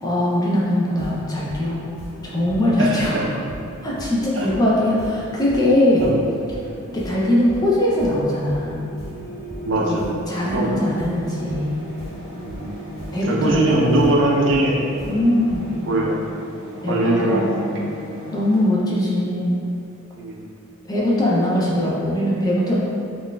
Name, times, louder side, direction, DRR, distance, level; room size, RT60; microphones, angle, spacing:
voice 1, 0.0-1.8 2.2-3.2 3.8-6.1 6.9-8.9 9.8-10.0 10.3-11.9 13.1-13.9 15.1-15.7 16.8-17.7 18.3-19.7 20.9-22.8, left 1 dB, 20° left, -5 dB, 0.4 m, -21 dB
sound 1, 0.9-15.9, right 1 dB, 60° left, 0.8 m, -37 dB
voice 2, 9.6-10.1 10.5-10.8 12.4-12.7 13.2-14.8 15.9-16.2 16.9-17.9 20.1-20.4, right 2 dB, 60° right, -2 dB, 0.4 m, -21 dB
Grocery store freezer section, 11.1-18.7, equal, 85° left, 1.2 m, -37 dB
3.7 x 2.4 x 2.2 m, 2.5 s
head